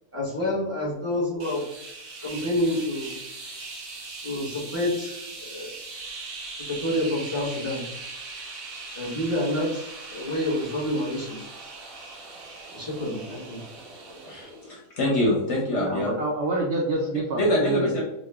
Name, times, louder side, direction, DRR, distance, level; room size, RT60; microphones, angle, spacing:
voice 1, 0.1-1.6 2.2-3.2 4.2-5.7 6.7-7.8 8.9-11.5 12.7-13.6, left 1 dB, 10° right, -8 dB, 1.1 m, -28 dB
sound 1, 1.4-14.7, right 3 dB, 65° right, 1.3 m, -40 dB
voice 2, 14.2-16.2 17.4-18.0, left 1 dB, 60° left, -2 dB, 0.8 m, -24 dB
voice 3, 15.7-18.0, right 2 dB, 80° right, -2 dB, 0.5 m, -27 dB
3.0 x 2.2 x 3.5 m, 0.85 s
omnidirectional pair, 1.6 m